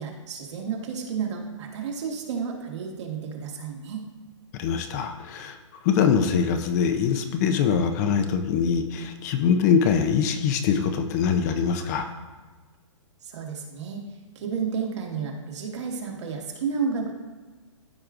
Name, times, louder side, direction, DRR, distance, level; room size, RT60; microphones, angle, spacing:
voice 1, 0.0-4.0 13.2-14.0 14.4-17.1, right 6 dB, 60° right, 0 dB, 1.7 m, -31 dB
voice 2, 4.6-5.6 5.8-12.1, left 7 dB, 35° left, 7 dB, 0.5 m, -23 dB
13.5 x 4.6 x 2.5 m, 1.3 s
hypercardioid pair, 140°, 17 cm